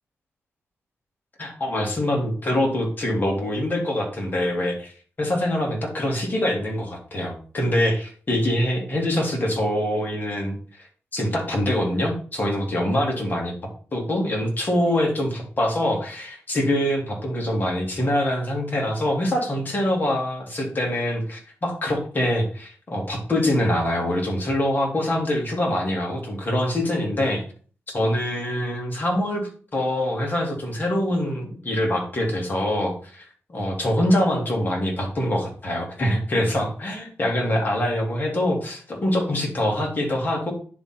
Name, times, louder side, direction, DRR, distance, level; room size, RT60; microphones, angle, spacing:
voice 1, 1.4-4.9 5.2-10.6 11.1-13.5 13.9-27.4 27.9-40.5, left 1 dB, 40° left, 0 dB, 2.4 m, -24 dB
10.0 x 3.7 x 4.4 m, 0.43 s
cardioid pair, 90°, 5 cm